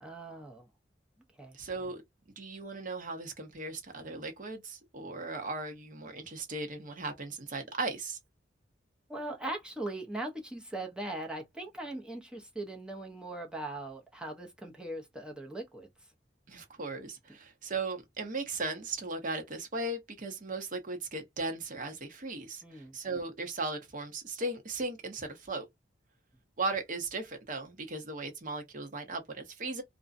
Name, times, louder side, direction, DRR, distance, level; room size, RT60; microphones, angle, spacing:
voice 1, 0.0-0.7 1.4-1.6 9.1-15.9 22.6-23.0, right 1 dB, 5° right, 0.5 m, -40 dB
voice 2, 1.5-2.0 2.4-8.2 16.5-25.7 26.6-29.8, right 3 dB, 45° right, 0.8 m, -37 dB
2.5 x 2.1 x 2.4 m
head